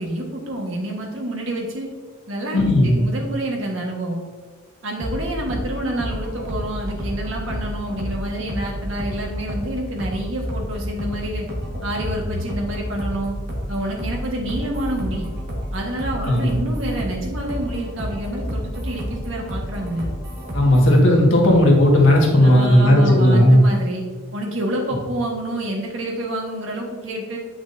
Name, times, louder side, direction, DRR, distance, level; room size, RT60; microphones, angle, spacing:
voice 1, 0.0-1.9 2.3-4.2 4.8-11.5 11.8-13.4 13.7-15.3 15.7-20.1 22.4-24.0 24.3-27.4, right 1 dB, 85° right, -1 dB, 1.6 m, -28 dB
voice 2, 2.5-3.0 16.1-16.5 20.5-23.6, left 1 dB, 85° left, -1 dB, 1.8 m, -14 dB
sound 1, 5.0-21.0, equal, 50° right, 1.7 m, -30 dB
8.7 x 6.0 x 2.7 m, 1.5 s
head